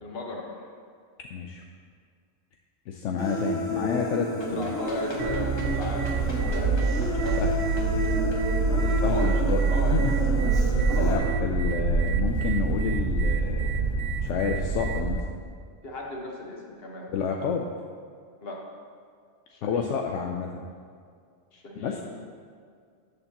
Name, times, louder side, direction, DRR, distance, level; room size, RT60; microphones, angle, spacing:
voice 1, 0.0-0.7 4.4-6.9 7.2-7.5 8.7-9.4 9.7-10.1 10.9-11.3 15.8-17.1 18.4-18.6 19.5-19.9 21.5-22.0, left 2 dB, 55° left, -1 dB, 1.5 m, -36 dB
voice 2, 1.3-1.6 2.9-4.7 7.4-7.5 9.0-13.7 14.2-15.2 17.1-17.7 19.6-20.6 21.8-22.0, left 6 dB, 80° left, 2 dB, 0.9 m, -30 dB
Human voice, 3.2-11.2, equal, 5° left, 1.2 m, -31 dB
Run, 4.4-10.5, left 1 dB, 25° left, 1.2 m, -43 dB
sound 1, 5.2-15.2, right 4 dB, 90° right, 1.1 m, -25 dB
13.0 x 6.7 x 2.9 m, 2.2 s
omnidirectional pair, 1.2 m